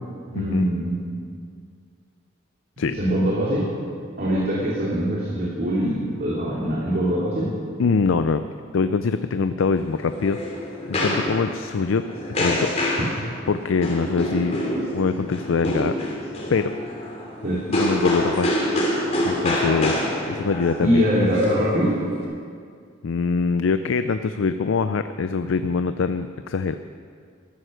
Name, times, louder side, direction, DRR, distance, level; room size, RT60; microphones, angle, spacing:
voice 1, 0.3-1.0 3.0-3.7 4.2-7.5 17.4-17.6 20.8-22.0, equal, 45° right, -6 dB, 2.6 m, -22 dB
voice 2, 7.8-8.4 8.7-10.4 10.9-12.0 12.4-12.7 13.5-14.6 14.9-15.9 16.5-16.7 17.7-18.9 19.2-20.0 20.3-21.0 23.0-26.8, left 4 dB, 70° left, 10 dB, 0.4 m, -23 dB
sound 1, 9.8-22.2, left 1 dB, 30° left, 3.2 m, -27 dB
13.5 x 13.0 x 6.4 m, 2.2 s
head